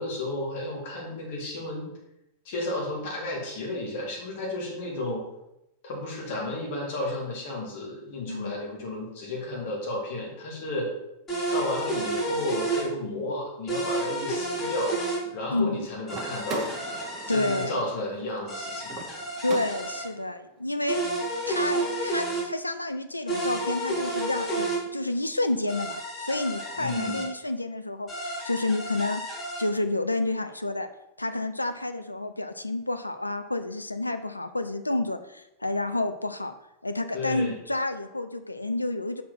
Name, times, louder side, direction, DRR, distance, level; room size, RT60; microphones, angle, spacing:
voice 1, 0.0-2.0 2.4-5.3 5.8-10.9 11.5-16.7 17.3-19.0 26.8-27.3 37.1-37.6, left 1 dB, 50° left, -2 dB, 2.1 m, -32 dB
sound 1, 11.3-12.9 13.7-15.2 16.1-17.7 18.5-20.1 20.9-22.5 23.3-24.8 25.7-27.3 28.1-29.7, right 1 dB, 20° left, 2.6 m, -31 dB
voice 2, 15.5-15.9 17.3-17.8 19.4-21.0 21.5-29.2 29.6-30.9 31.2-36.6 36.8-39.2, left 2 dB, 85° left, 9 dB, 0.4 m, -29 dB
sound 2, 16.1-20.2, right 4 dB, 30° right, 1.0 m, -39 dB
5.4 x 4.3 x 5.8 m, 0.86 s
figure-of-eight pair, 90°, 0 cm